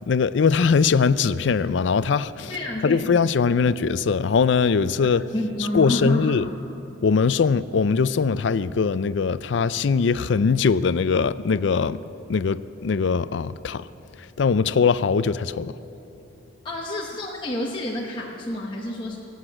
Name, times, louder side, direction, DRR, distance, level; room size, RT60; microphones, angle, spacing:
voice 1, 0.1-2.6 2.8-5.3 5.7-6.5 7.0-12.0 12.3-13.9 14.4-15.7, left 5 dB, 65° left, 0.4 m, -21 dB
voice 2, 2.5-3.1 5.3-6.5 16.6-19.2, left 1 dB, 25° left, 0.9 m, -29 dB
18.0 x 8.1 x 8.7 m
head